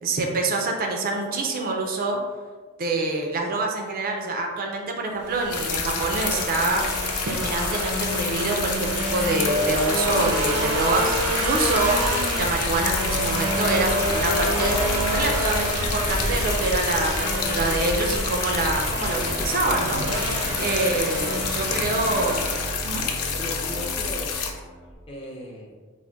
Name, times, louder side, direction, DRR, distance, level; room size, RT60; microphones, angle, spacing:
voice 1, 0.0-2.2 2.8-6.8 7.2-12.0 12.4-14.8 15.1-20.0 20.6-22.5 22.8-23.1, right 2 dB, 40° right, 2 dB, 0.4 m, -26 dB
sound 1, 5.2-23.1, right 1 dB, 80° right, 0.6 m, -27 dB
sound 2, 5.5-24.5, left 6 dB, 75° left, 0.4 m, -29 dB
sound 3, 18.5-25.0, right 1 dB, 50° left, 0.8 m, -36 dB
voice 2, 20.4-20.8 21.7-21.8 23.3-24.7 25.1-25.7, left 1 dB, 25° left, -2 dB, 0.5 m, -37 dB
3.4 x 2.1 x 3.8 m, 1.5 s
head